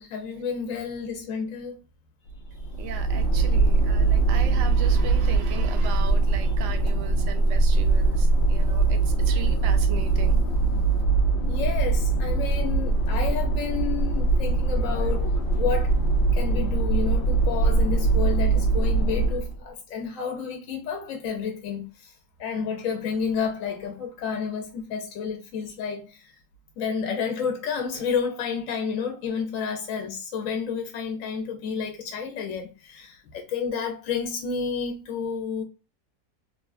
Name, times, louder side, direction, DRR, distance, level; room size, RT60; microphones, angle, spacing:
voice 1, 0.0-1.8 11.5-15.3 15.6-15.9 16.3-21.8 22.4-26.1 26.8-35.6, left 6 dB, 65° left, 1.0 m, -30 dB
sound 1, 2.3-19.6, right 3 dB, 80° left, 0.5 m, -22 dB
voice 2, 2.8-10.4, right 8 dB, 70° right, 0.7 m, -38 dB
3.1 x 2.3 x 2.3 m
omnidirectional pair, 1.7 m